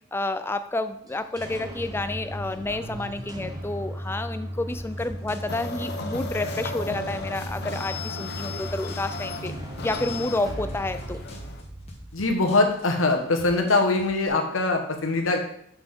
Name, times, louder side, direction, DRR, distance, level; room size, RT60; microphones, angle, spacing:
voice 1, 0.1-9.6 9.8-11.2, left 2 dB, 10° left, 11 dB, 0.3 m, -30 dB
sound 1, 1.1-12.7, right 1 dB, 20° right, 0.9 m, -37 dB
sound 2, 4.7-14.3, left 1 dB, 30° left, 1.2 m, -46 dB
sound 3, 5.5-11.6, left 3 dB, 55° left, 0.7 m, -36 dB
voice 2, 12.1-15.4, left 2 dB, 75° left, 4 dB, 1.1 m, -22 dB
6.8 x 5.9 x 3.7 m, 0.70 s
head